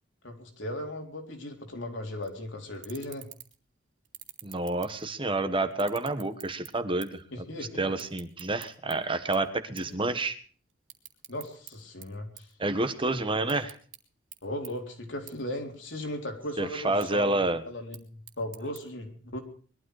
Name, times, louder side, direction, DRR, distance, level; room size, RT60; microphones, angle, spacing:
voice 1, 0.2-3.3 7.3-7.9 9.9-10.1 11.3-12.5 13.4-13.5 14.4-19.4, left 1 dB, 75° left, 3 dB, 4.0 m, -37 dB
sound 1, 2.2-2.4 2.7-3.7 4.0-5.3 5.7-7.3 7.5-9.0 9.3-9.5 9.8-10.0 10.3-11.7 12.0-13.0 13.3-14.0 14.3-14.4 14.6-14.7 15.3-15.4 15.7-16.3 16.8-17.1 17.7-18.8, right 13 dB, 80° right, 2.6 m, -47 dB
voice 2, 4.4-7.5 7.8-10.4 12.6-13.7 16.6-17.6, right 2 dB, 30° right, 9 dB, 1.4 m, -29 dB
21.0 x 13.0 x 4.9 m, 0.43 s
head